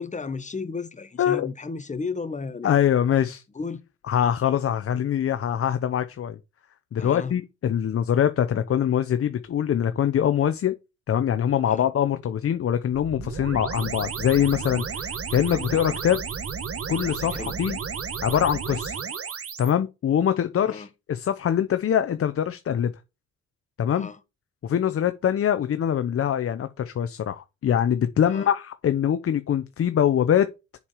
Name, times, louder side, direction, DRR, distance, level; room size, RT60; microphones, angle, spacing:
voice 1, 0.0-2.7 3.5-3.8 7.0-7.3 11.6-11.9 17.3-17.6 20.7-20.9 23.9-24.2 28.3-28.5, left 4 dB, 25° left, 1.2 m, -34 dB
voice 2, 2.6-3.4 4.1-6.4 6.9-10.7 11.1-16.2 16.9-17.8 18.2-19.0 19.6-22.9 23.8-24.1 24.6-30.5, left 9 dB, 50° left, 0.8 m, -23 dB
sound 1, 12.9-19.7, right 6 dB, 50° right, 1.7 m, -33 dB
7.1 x 4.8 x 6.3 m
cardioid pair, 90°, 30 cm